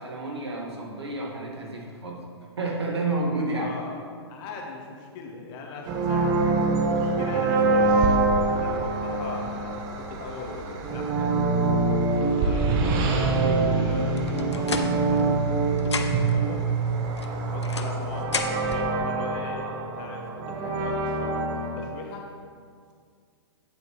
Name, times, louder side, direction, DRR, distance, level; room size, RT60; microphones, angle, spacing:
voice 1, 0.0-2.2 2.6-3.7, right 2 dB, 70° right, -1 dB, 1.7 m, -30 dB
voice 2, 3.5-4.0 4.3-8.2 8.5-11.3 12.1-16.6 17.3-22.2, left 3 dB, 30° left, 1 dB, 1.2 m, -39 dB
sound 1, 5.9-21.8, right 3 dB, 30° right, 0.8 m, -25 dB
sound 2, 14.2-15.5 15.8-16.4 17.2-18.8, left 4 dB, 75° left, 0.7 m, -33 dB
9.0 x 7.6 x 3.1 m, 2.1 s
figure-of-eight pair, 115°, 14 cm